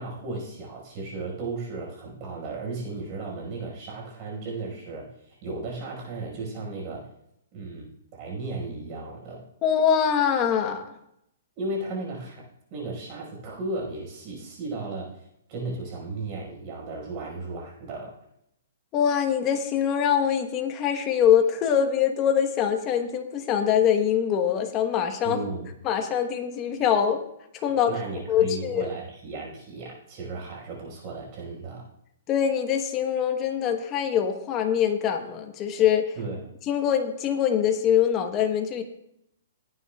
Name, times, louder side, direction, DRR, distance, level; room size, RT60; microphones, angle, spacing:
voice 1, 0.0-7.1 7.5-9.4 11.6-12.4 12.7-18.1 25.2-25.7 27.9-31.8 36.2-36.4, right 3 dB, 30° right, -2 dB, 5.0 m, -35 dB
voice 2, 9.6-10.9 18.9-25.4 25.8-27.2 27.5-28.0 28.3-28.9 32.3-36.1 36.7-38.8, left 8 dB, 25° left, 5 dB, 1.1 m, -23 dB
18.0 x 9.4 x 2.3 m, 0.78 s
hypercardioid pair, 160°, 0 cm